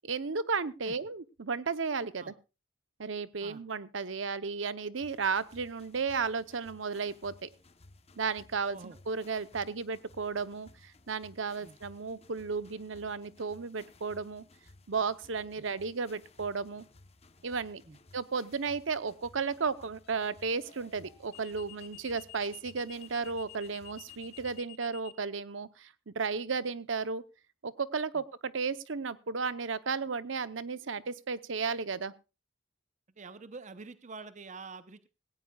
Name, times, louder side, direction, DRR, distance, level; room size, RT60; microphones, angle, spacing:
voice 1, 0.1-2.3 3.0-7.5 8.2-14.4 14.9-16.8 17.4-17.8 18.1-27.2 27.6-32.1, right 5 dB, 90° right, 15 dB, 0.8 m, -34 dB
sound 1, 5.0-24.6, left 2 dB, 35° left, 0.9 m, -59 dB
sound 2, 16.7-17.1 20.0-25.1, left 16 dB, 60° left, 3.5 m, -51 dB
voice 2, 33.2-35.1, right 4 dB, 40° right, 12 dB, 0.8 m, -46 dB
17.5 x 16.5 x 2.3 m, 0.29 s
head